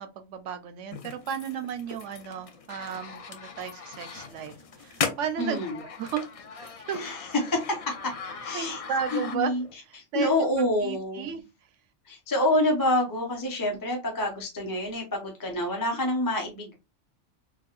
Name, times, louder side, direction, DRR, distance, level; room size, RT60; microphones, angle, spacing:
voice 1, 0.0-5.6 6.0-6.2 6.6-7.0 8.5-9.5 9.8-10.3 10.6-11.4, right 8 dB, 80° right, 0.9 m, -34 dB
sound 1, 0.9-9.7, left 5 dB, 65° left, 0.3 m, -38 dB
voice 2, 5.4-5.8 7.0-8.1 8.4-8.8 9.1-9.6 10.0-11.3 12.1-16.7, left 1 dB, 20° left, 0.6 m, -27 dB
4.2 x 2.3 x 2.4 m
omnidirectional pair, 1.2 m